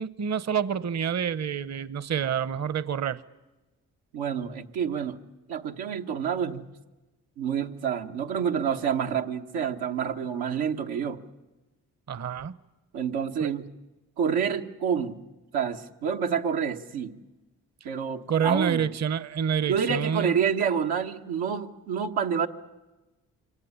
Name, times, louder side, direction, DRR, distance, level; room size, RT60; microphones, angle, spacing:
voice 1, 0.0-3.2 12.1-12.6 13.4-13.5 18.3-20.3, right 7 dB, 45° right, 17 dB, 0.9 m, -28 dB
voice 2, 4.1-5.2 5.5-6.6 7.4-11.2 12.9-13.6 14.2-15.2 15.5-17.1 17.8-18.9 19.7-22.5, right 7 dB, 90° right, 3 dB, 1.3 m, -28 dB
24.5 x 18.0 x 9.9 m, 1.1 s
supercardioid pair, 50°, 36 cm